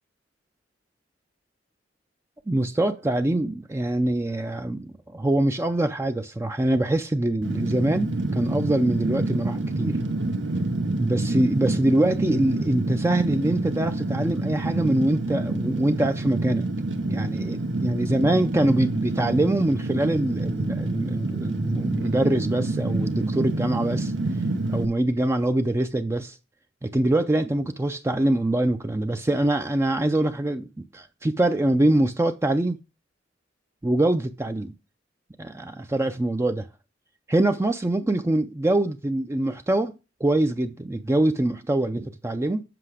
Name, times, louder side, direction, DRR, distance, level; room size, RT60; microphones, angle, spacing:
voice 1, 2.5-10.0 11.0-16.7 17.0-24.1 24.7-26.4 26.8-30.7 30.9-32.8 33.8-34.8 35.4-36.7 37.3-39.9 40.2-42.6, right 1 dB, 15° right, 0.4 m, -24 dB
Fire, 7.4-24.9, right 2 dB, 85° right, 0.9 m, -27 dB
7.7 x 5.8 x 4.9 m
head